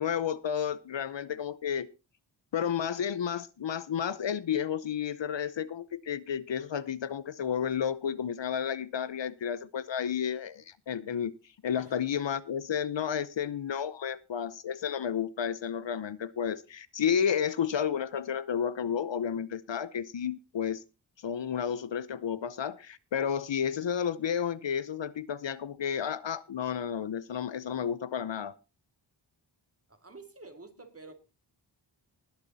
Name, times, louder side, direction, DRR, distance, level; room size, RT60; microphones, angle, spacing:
voice 1, 0.0-1.9 2.5-11.3 11.6-20.8 21.2-28.5, left 8 dB, 75° left, 0.9 m, -31 dB
voice 2, 29.9-31.1, right 3 dB, 30° right, 2.5 m, -49 dB
20.5 x 7.1 x 4.2 m
wide cardioid pair, 85°, 44 cm